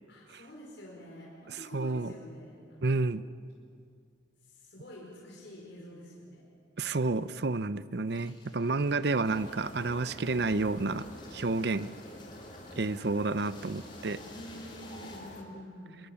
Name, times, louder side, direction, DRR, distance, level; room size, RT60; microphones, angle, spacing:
voice 1, 0.1-3.1 4.4-6.5 14.2-16.0, equal, 70° left, -4 dB, 5.0 m, -48 dB
voice 2, 1.5-2.1 2.8-3.2 6.8-11.1 11.3-11.9 12.8-14.2, right 3 dB, 60° right, 14 dB, 0.6 m, -30 dB
sound 1, 8.1-15.2, left 2 dB, 25° left, 4.9 m, -56 dB
sound 2, 9.2-15.4, left 1 dB, 40° left, 2.8 m, -47 dB
26.0 x 22.0 x 7.1 m, 2.3 s
head